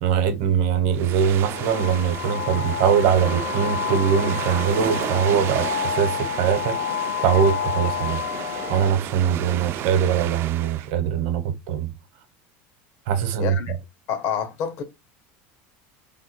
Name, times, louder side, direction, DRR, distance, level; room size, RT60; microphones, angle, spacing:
voice 1, 0.0-6.8 7.2-8.2 8.7-11.9 13.1-13.8, right 8 dB, 70° right, 0.9 m, -22 dB
sound 1, 0.9-10.9, right 11 dB, 40° right, 0.4 m, -33 dB
sound 2, 1.5-8.9, left 9 dB, 80° left, 0.5 m, -29 dB
voice 2, 13.4-13.8 14.1-14.8, left 8 dB, 55° left, 1.0 m, -27 dB
3.4 x 2.2 x 4.4 m
supercardioid pair, 135°, 6 cm